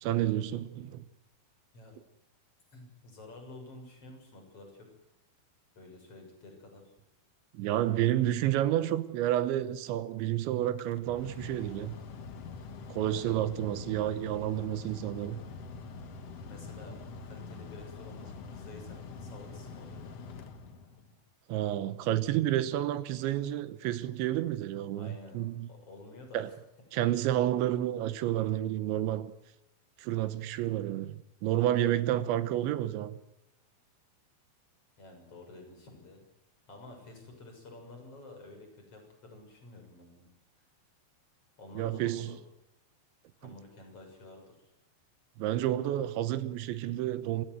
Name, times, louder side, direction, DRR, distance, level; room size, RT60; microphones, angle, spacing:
voice 1, 0.0-1.1 7.5-12.0 12.9-15.4 21.5-25.7 26.3-26.5 26.9-29.3 30.0-33.2 41.8-42.4 43.4-43.5 45.4-47.5, right 13 dB, 75° right, 3.1 m, -30 dB
voice 2, 2.7-4.9 5.8-6.9 12.6-12.7 13.1-13.4 16.5-20.0 24.9-26.6 35.0-36.2 36.7-40.3 41.6-42.4 43.4-44.7, left 2 dB, 30° left, 7.4 m, -50 dB
Mechanical fan, 10.7-21.2, left 4 dB, 90° left, 1.3 m, -45 dB
28.5 x 16.0 x 7.9 m
omnidirectional pair, 5.6 m